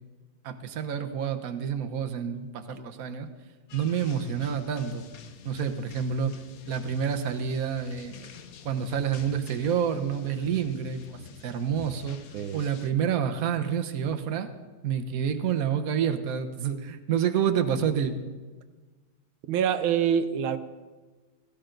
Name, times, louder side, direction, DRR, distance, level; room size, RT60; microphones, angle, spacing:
voice 1, 0.4-3.3 3.7-5.0 5.4-6.3 6.7-8.3 8.6-12.2 12.5-14.5 14.8-18.2, right 8 dB, 50° right, 7 dB, 1.3 m, -28 dB
sound 1, 3.7-12.9, left 7 dB, 55° left, 1.1 m, -48 dB
voice 2, 19.5-20.6, right 8 dB, 90° right, 11 dB, 1.6 m, -25 dB
17.0 x 16.0 x 3.9 m, 1.3 s
omnidirectional pair, 2.2 m